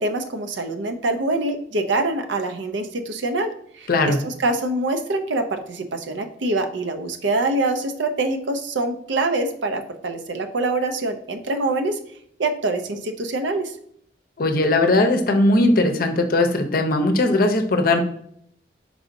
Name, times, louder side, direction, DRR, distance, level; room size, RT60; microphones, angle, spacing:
voice 1, 0.0-12.0 12.4-13.7, right 2 dB, 90° right, 7 dB, 0.6 m, -25 dB
voice 2, 3.9-4.2 14.4-18.0, left 2 dB, 50° left, 5 dB, 0.6 m, -19 dB
4.7 x 4.0 x 2.6 m, 0.67 s
head